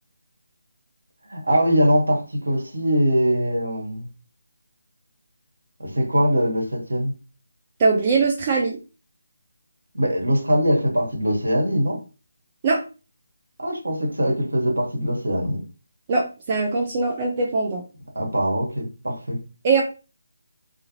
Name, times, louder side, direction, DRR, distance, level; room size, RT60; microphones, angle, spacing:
voice 1, 1.3-4.1 5.8-7.1 9.9-12.0 13.6-15.6 18.1-19.4, equal, 70° right, 1 dB, 1.0 m, -22 dB
voice 2, 7.8-8.8 12.6-12.8 16.1-17.8 19.6-19.8, right 4 dB, 25° right, 0 dB, 0.4 m, -21 dB
2.5 x 2.4 x 2.8 m, 0.33 s
figure-of-eight pair, 150°, 0 cm